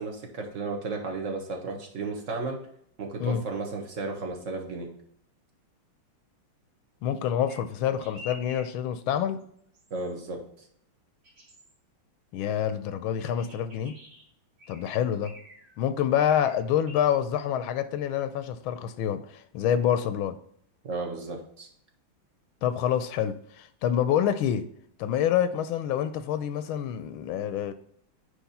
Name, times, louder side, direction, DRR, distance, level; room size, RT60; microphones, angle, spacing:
voice 1, 0.0-2.6 3.0-4.9 9.9-10.4 20.8-21.7, right 3 dB, 45° right, 2 dB, 1.4 m, -34 dB
voice 2, 7.0-9.4 12.3-14.0 14.7-15.3 15.8-20.3 22.6-24.7 25.0-27.7, left 9 dB, 80° left, 11 dB, 1.4 m, -27 dB
sound 1, 7.5-7.6 8.0-8.7 9.2-9.4 9.7-10.1 11.2-11.7 13.2-14.2 14.6-14.9 15.2-15.8 16.2-16.5 16.9-17.1, left 1 dB, 65° right, 3.1 m, -49 dB
9.5 x 3.4 x 4.1 m, 0.67 s
omnidirectional pair, 2.3 m